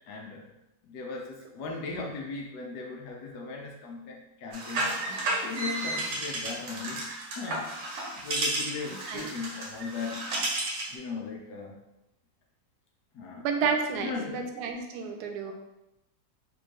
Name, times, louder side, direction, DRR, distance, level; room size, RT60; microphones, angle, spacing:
voice 1, 0.1-0.5 0.8-4.9 5.4-7.1 7.4-7.7 8.1-10.3 10.9-11.8 13.1-13.5 14.0-14.4 15.4-15.5, left 4 dB, 70° left, 0 dB, 1.2 m, -37 dB
sound 1, 4.5-10.9, right 2 dB, 90° right, 1.7 m, -32 dB
voice 2, 13.4-15.5, right 5 dB, 70° right, 4 dB, 1.1 m, -30 dB
4.2 x 2.6 x 4.6 m, 0.91 s
omnidirectional pair, 1.9 m